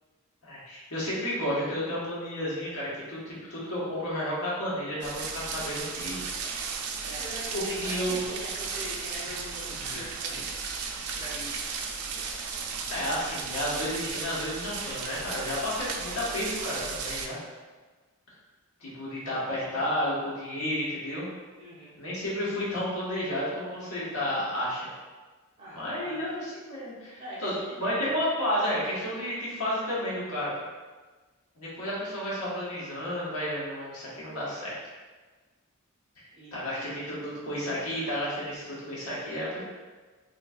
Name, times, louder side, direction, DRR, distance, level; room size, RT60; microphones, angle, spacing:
voice 1, 0.4-6.2 7.5-8.2 9.8-10.1 12.9-17.4 18.8-21.3 22.0-24.9 25.7-27.5 27.8-30.5 31.6-34.8 36.2-39.6, equal, 85° left, -8 dB, 1.3 m, -32 dB
sound 1, 5.0-17.3, right 5 dB, 90° right, 0.4 m, -35 dB
voice 2, 7.0-10.7 11.2-11.7 21.6-21.9 25.6-26.4 27.2-28.2 36.3-36.9, right 1 dB, 30° right, -8 dB, 1.2 m, -42 dB
3.8 x 3.1 x 2.3 m, 1.3 s
head